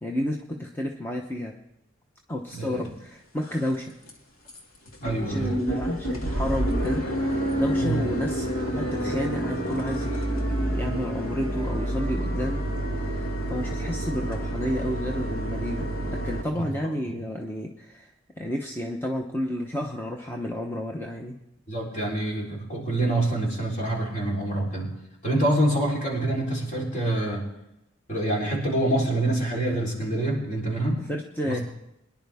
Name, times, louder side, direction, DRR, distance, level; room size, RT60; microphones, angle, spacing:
voice 1, 0.0-1.5 2.3-3.9 5.2-12.6 13.0-21.4 31.0-31.6, left 1 dB, 10° left, 1 dB, 0.8 m, -31 dB
voice 2, 2.5-2.9 5.0-5.5 7.8-8.0 16.5-16.6 17.1-17.2 21.7-24.9 25.2-27.4 28.1-31.0 31.4-31.6, right 1 dB, 40° left, -3 dB, 3.8 m, -26 dB
sound 1, 2.8-2.9 3.4-3.8 4.1-4.2 4.5-4.6 4.9-16.4, right 1 dB, 85° left, 2.1 m, -28 dB
22.5 x 10.5 x 3.5 m, 0.88 s
head